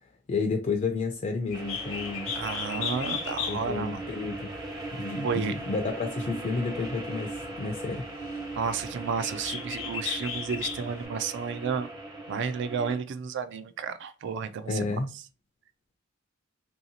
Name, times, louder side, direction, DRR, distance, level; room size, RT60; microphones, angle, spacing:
voice 1, 0.0-2.3 3.5-4.5 5.0-8.0 14.7-15.1, left 4 dB, 35° left, 0.3 m, -31 dB
Bird, 1.5-11.1, left 7 dB, 80° left, 0.7 m, -37 dB
sound 1, 1.5-13.0, right 2 dB, 20° right, 0.6 m, -39 dB
voice 2, 2.4-4.0 5.2-5.5 8.6-11.9 12.3-14.9, right 6 dB, 60° right, 0.3 m, -32 dB
2.8 x 2.7 x 2.7 m
head